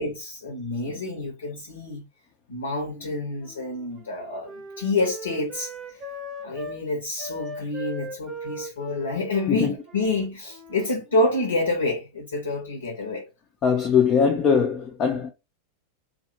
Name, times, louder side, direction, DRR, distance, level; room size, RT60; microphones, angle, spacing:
voice 1, 0.0-2.0 2.5-5.7 6.4-13.3, left 2 dB, 70° left, 0.6 m, -28 dB
Wind instrument woodwind instrument, 2.8-6.8 7.2-11.6, right 1 dB, 20° right, 0.7 m, -40 dB
voice 2, 13.6-15.3, left 6 dB, 30° left, 0.4 m, -21 dB
2.1 x 2.0 x 3.0 m
figure-of-eight pair, 90°, 0 cm